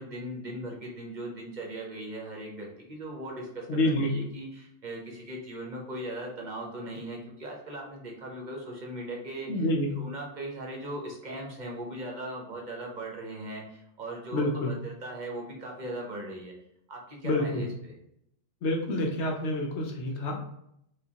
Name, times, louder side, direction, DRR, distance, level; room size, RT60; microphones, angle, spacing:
voice 1, 0.0-9.7 10.0-16.5 16.9-17.9, right 1 dB, 45° right, -1 dB, 0.7 m, -39 dB
voice 2, 3.7-4.1 9.5-9.9 14.3-14.8 17.2-17.7 18.6-20.4, left 1 dB, 65° left, 1 dB, 0.9 m, -28 dB
4.7 x 2.3 x 2.8 m, 0.76 s
omnidirectional pair, 1.3 m